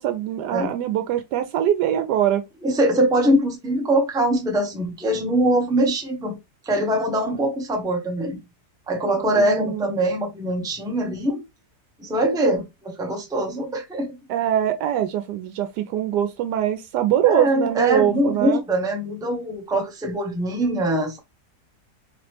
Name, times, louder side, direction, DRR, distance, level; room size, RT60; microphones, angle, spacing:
voice 1, 0.0-2.4 9.3-9.8 14.3-18.6, right 11 dB, 85° right, 1.2 m, -23 dB
voice 2, 2.6-6.4 6.6-8.4 8.9-11.4 12.0-14.2 17.3-21.2, right 1 dB, 5° right, 0.5 m, -22 dB
3.7 x 3.0 x 3.3 m
omnidirectional pair, 1.7 m